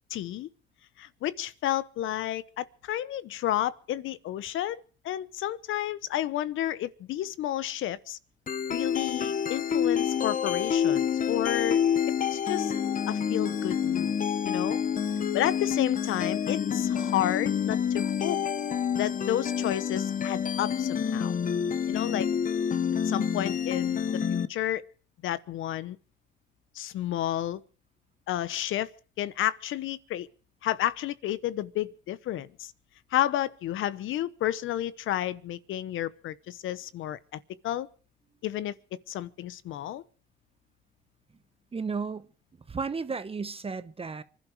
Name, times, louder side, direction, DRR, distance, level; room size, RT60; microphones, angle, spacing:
voice 1, 0.1-0.5 1.0-4.8 5.0-8.2 8.7-11.8 12.3-12.7 13.1-14.1 14.4-14.8 15.3-18.4 19.0-21.3 21.9-22.3 23.0-24.8 25.2-26.0 26.7-27.6 28.3-28.9 29.2-30.3 30.6-32.7 33.1-37.9 38.4-38.7 39.1-40.0, left 12 dB, 85° left, 1.0 m, -31 dB
sound 1, 8.5-24.5, left 8 dB, 40° left, 1.0 m, -28 dB
voice 2, 41.7-42.3 42.7-44.2, right 5 dB, 30° right, 1.1 m, -33 dB
25.5 x 11.5 x 4.7 m
cardioid pair, 90°, 20 cm